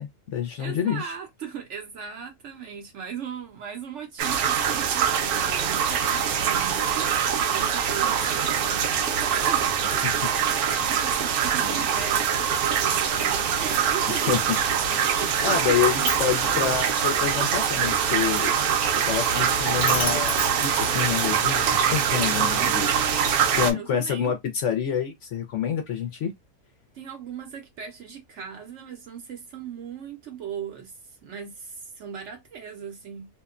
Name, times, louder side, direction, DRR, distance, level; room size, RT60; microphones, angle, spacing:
voice 1, 0.0-1.1 10.0-10.3 10.8-10.9 11.6-11.8 14.1-14.6 14.9-15.0 15.4-18.5 19.0-23.3 23.6-26.3, left 8 dB, 65° left, 0.8 m, -28 dB
voice 2, 0.6-14.4 15.1-16.1 22.4-24.4 26.9-33.3, right 7 dB, 65° right, 0.8 m, -38 dB
sound 1, 4.2-23.7, right 8 dB, 85° right, 1.1 m, -24 dB
Sliding door, 15.1-21.5, left 3 dB, 40° left, 1.1 m, -37 dB
2.8 x 2.1 x 2.4 m
omnidirectional pair, 1.6 m